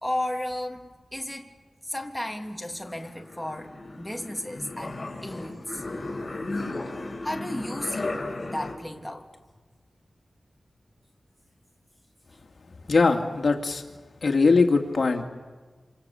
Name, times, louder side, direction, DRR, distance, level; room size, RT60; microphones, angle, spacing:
voice 1, 0.0-1.5 1.8-5.8 7.2-8.2 8.4-9.3, left 1 dB, 5° left, 3 dB, 2.9 m, -34 dB
sound 1, 2.3-8.7, left 2 dB, 30° left, 6.2 m, -35 dB
voice 2, 12.9-13.8 14.2-15.2, left 4 dB, 65° left, 3 dB, 2.5 m, -21 dB
27.0 x 26.5 x 7.2 m, 1.4 s
wide cardioid pair, 65°, 0 cm